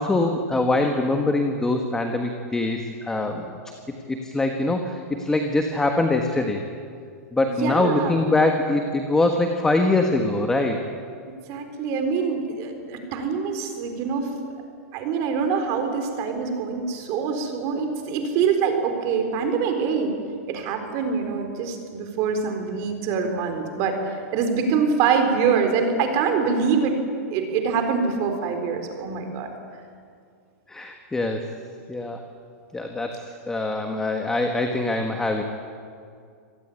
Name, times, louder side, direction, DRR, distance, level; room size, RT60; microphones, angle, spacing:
voice 1, 0.0-3.6 4.1-6.6 7.3-10.9 30.7-31.5 31.9-32.2 32.7-35.4, left 2 dB, 5° left, 4 dB, 1.4 m, -23 dB
voice 2, 7.5-8.2 11.2-14.3 14.9-20.2 20.5-26.9 27.3-29.5, right 5 dB, 35° right, 6 dB, 4.1 m, -25 dB
26.0 x 18.0 x 9.7 m, 2.3 s
hypercardioid pair, 155°, 8 cm